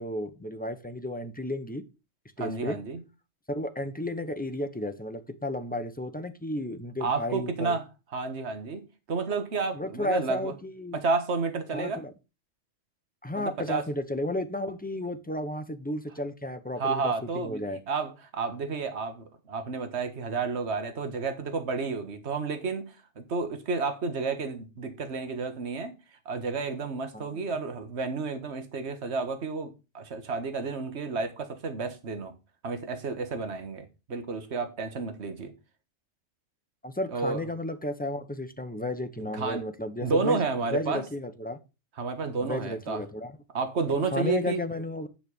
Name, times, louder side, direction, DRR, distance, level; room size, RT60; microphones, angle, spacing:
voice 1, 0.0-1.8 2.4-2.8 3.5-7.8 9.7-11.0 11.7-12.1 13.2-17.8 27.1-27.2 36.8-40.4 40.7-41.6 42.4-43.3 44.1-45.1, left 1 dB, 10° left, 1.0 m, -33 dB
voice 2, 2.4-3.0 7.0-7.8 8.1-10.5 10.9-12.1 13.4-13.8 16.8-17.6 17.9-25.9 26.3-32.3 32.6-35.5 37.1-37.4 39.3-39.7 40.0-41.0 42.0-43.0 43.5-44.6, right 4 dB, 55° right, 1.7 m, -31 dB
9.8 x 6.2 x 5.4 m
omnidirectional pair, 1.3 m